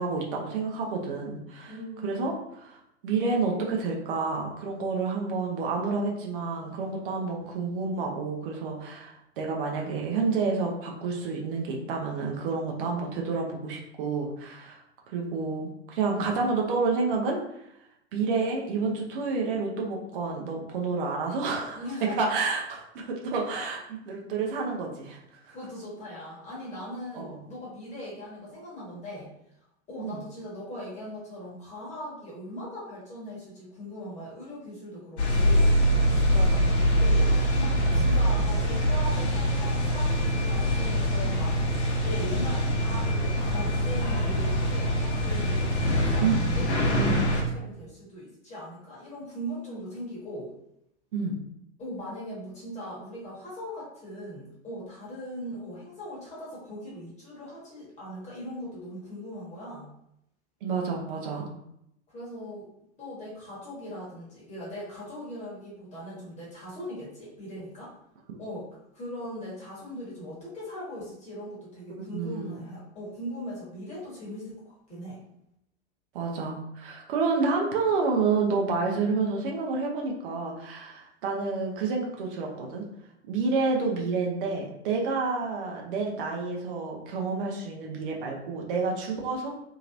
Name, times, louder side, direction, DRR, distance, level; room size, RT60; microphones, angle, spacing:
voice 1, 0.0-1.8 2.0-14.8 15.1-17.4 18.1-25.6 27.1-27.4 30.0-30.2 36.3-36.8 46.2-46.3 47.0-47.2 51.1-51.4 60.6-61.5 72.0-72.6 76.1-82.9 83.2-89.5, right 4 dB, 50° right, 0 dB, 0.7 m, -29 dB
voice 2, 1.6-2.1 21.7-22.3 25.5-29.3 29.9-35.7 37.0-41.5 42.0-46.2 46.5-47.2 47.5-50.5 51.8-59.9 62.1-62.7 63.0-67.9 68.4-68.7 68.9-75.2, equal, 20° left, -7 dB, 1.3 m, -39 dB
sound 1, 35.2-47.4, equal, 65° left, 0.8 m, -24 dB
2.9 x 2.8 x 2.5 m, 0.78 s
figure-of-eight pair, 90°, 36 cm